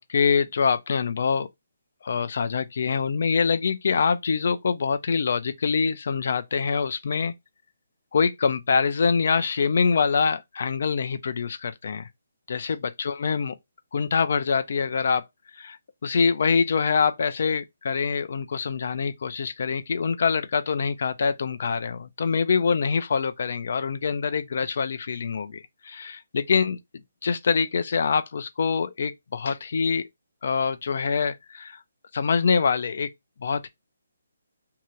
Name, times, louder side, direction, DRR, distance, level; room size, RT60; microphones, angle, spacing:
voice 1, 0.0-1.5 2.0-7.3 8.1-12.1 12.5-13.6 13.9-15.2 15.6-26.8 27.2-30.1 30.4-31.8 32.1-33.1 33.4-33.7, left 5 dB, 55° left, 0.5 m, -25 dB
2.8 x 2.4 x 3.0 m
hypercardioid pair, 170°, 0 cm